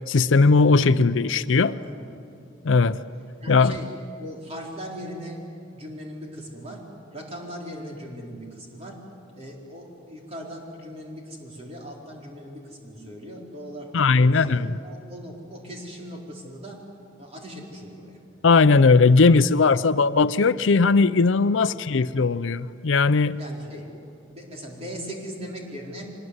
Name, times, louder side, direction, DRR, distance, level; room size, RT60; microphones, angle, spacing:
voice 1, 0.1-1.7 2.6-3.0 3.5-3.7 13.9-14.7 18.4-23.4, left 4 dB, 70° left, 0.6 m, -18 dB
voice 2, 1.6-2.1 2.6-2.9 3.4-3.9 4.2-5.4 5.7-9.1 9.4-16.9 17.2-18.2 21.4-21.7 23.4-23.9 24.3-26.1, equal, 35° right, 4.2 m, -39 dB
24.0 x 20.5 x 9.7 m
head